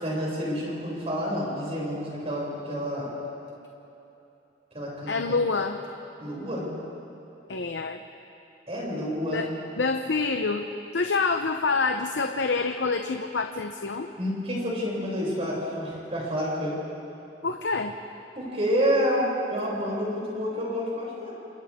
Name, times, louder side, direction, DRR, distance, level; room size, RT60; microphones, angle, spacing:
voice 1, 0.0-3.1 4.7-5.4 6.2-6.7 8.7-9.5 14.2-16.7 18.4-21.3, equal, 35° right, -5 dB, 7.1 m, -29 dB
voice 2, 5.1-5.8 7.5-8.0 9.3-9.5 9.8-10.7 10.9-14.1 17.4-17.9, left 4 dB, 85° left, 5 dB, 0.8 m, -26 dB
29.0 x 27.0 x 3.7 m, 2.9 s
head